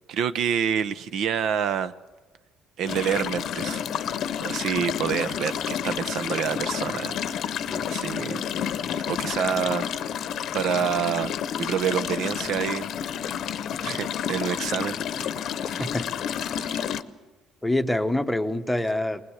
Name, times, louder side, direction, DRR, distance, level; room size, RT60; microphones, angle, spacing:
voice 1, 0.1-1.9 2.8-3.8 4.4-7.6 7.9-8.5 9.1-9.9 10.5-11.3 11.6-12.9 13.8-15.3 15.6-15.8 16.5-16.8, right 8 dB, 60° right, 13 dB, 0.7 m, -27 dB
sound 1, 2.9-17.0, left 9 dB, 60° left, 0.8 m, -30 dB
voice 2, 17.6-19.2, left 1 dB, 5° left, 8 dB, 0.9 m, -25 dB
20.5 x 20.0 x 8.0 m, 1.3 s
cardioid pair, 130°, 0 cm